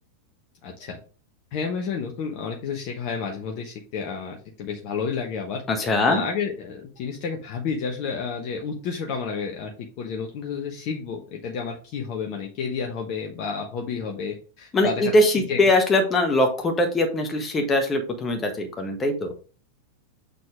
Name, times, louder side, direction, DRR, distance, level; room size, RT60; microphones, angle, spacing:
voice 1, 0.6-1.0 1.5-9.7 10.0-15.1 15.5-15.6, left 5 dB, 45° left, 1 dB, 1.1 m, -31 dB
voice 2, 5.7-6.2 14.7-19.3, left 1 dB, 20° left, 5 dB, 1.5 m, -21 dB
6.7 x 4.1 x 3.7 m, 0.37 s
figure-of-eight pair, 90°, 0 cm